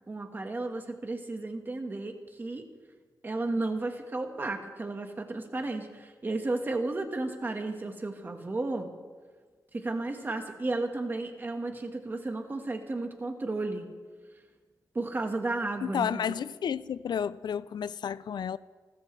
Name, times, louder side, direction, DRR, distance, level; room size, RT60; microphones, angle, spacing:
voice 1, 0.1-2.6 3.2-8.9 9.7-13.9 14.9-16.4, right 2 dB, 30° right, 1.6 m, -33 dB
voice 2, 15.8-18.6, left 8 dB, 85° left, 0.5 m, -31 dB
29.5 x 13.5 x 3.3 m
wide cardioid pair, 160°, 7 cm